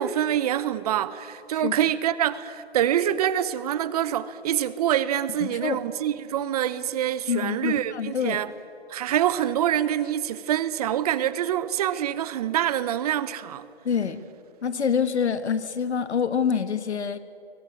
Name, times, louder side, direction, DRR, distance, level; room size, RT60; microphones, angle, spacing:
voice 1, 0.0-8.5 8.9-13.6, right 11 dB, 35° right, 0.9 m, -25 dB
voice 2, 5.4-5.8 7.3-8.4 13.8-14.2 14.6-17.2, left 7 dB, 85° left, 1.7 m, -26 dB
23.0 x 20.0 x 9.4 m
hypercardioid pair, 150°, 33 cm